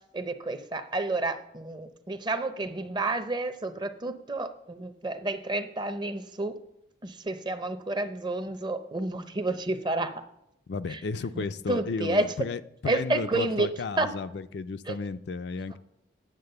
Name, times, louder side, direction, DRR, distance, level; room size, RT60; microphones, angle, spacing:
voice 1, 0.1-6.6 7.0-10.2 10.9-11.0 11.3-12.3 12.9-13.7 14.0-14.1 14.9-15.0, right 2 dB, 25° right, 10 dB, 0.6 m, -30 dB
voice 2, 10.7-15.8, left 4 dB, 60° left, 11 dB, 0.4 m, -33 dB
9.6 x 7.3 x 6.7 m, 0.81 s
head